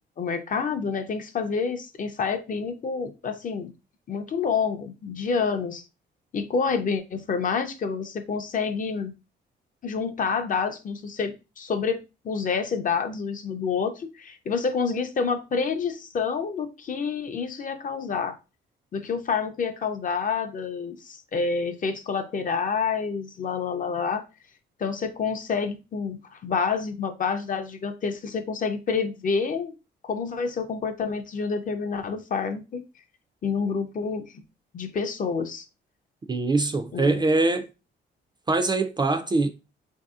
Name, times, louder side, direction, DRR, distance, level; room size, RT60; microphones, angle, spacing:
voice 1, 0.2-3.7 4.1-5.8 6.3-9.1 9.8-18.4 18.9-24.2 24.8-29.7 30.0-32.8 33.4-34.2 34.7-35.6 36.9-37.2, left 5 dB, 45° left, 0.5 m, -28 dB
voice 2, 36.3-37.7 38.5-39.5, right 3 dB, 20° right, 0.4 m, -23 dB
3.3 x 2.7 x 2.3 m
cardioid pair, 90°, 20 cm